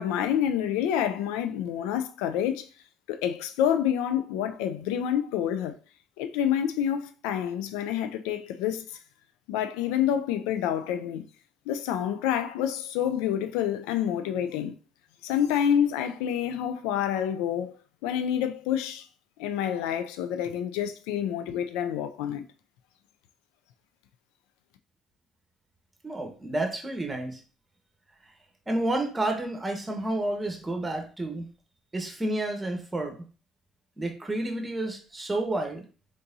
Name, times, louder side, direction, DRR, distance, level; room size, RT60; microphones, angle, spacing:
voice 1, 0.0-2.7 3.1-5.8 6.2-8.9 9.5-11.2 11.7-14.7 15.2-17.7 18.0-19.1 19.4-22.4, left 9 dB, 90° left, 0.4 m, -28 dB
voice 2, 26.0-27.4 28.7-31.5 31.9-33.2 34.0-35.8, right 1 dB, 20° right, 1.2 m, -30 dB
3.8 x 3.6 x 2.7 m
supercardioid pair, 80°, 0 cm